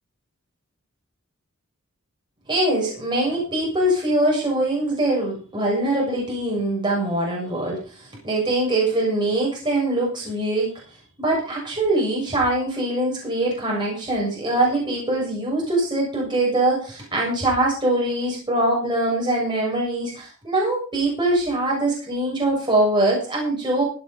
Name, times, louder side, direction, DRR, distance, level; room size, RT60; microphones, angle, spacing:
voice 1, 2.5-10.7 11.2-23.8, right 1 dB, 20° right, -3 dB, 7.2 m, -23 dB
16.0 x 9.4 x 5.3 m, 0.38 s
head